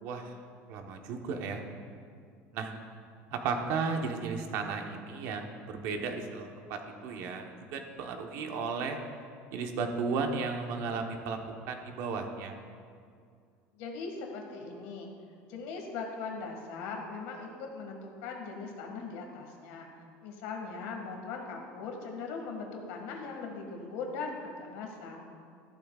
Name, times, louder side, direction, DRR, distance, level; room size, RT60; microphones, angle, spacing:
voice 1, 0.0-0.4 0.7-1.6 2.5-2.7 3.3-9.0 9.5-11.4 11.7-12.5, right 4 dB, 60° right, 4 dB, 1.1 m, -34 dB
voice 2, 13.7-15.1 15.5-19.9 20.2-25.2, left 4 dB, 75° left, 1 dB, 1.9 m, -40 dB
14.0 x 11.5 x 2.4 m, 2.2 s
cardioid pair, 165°, 5 cm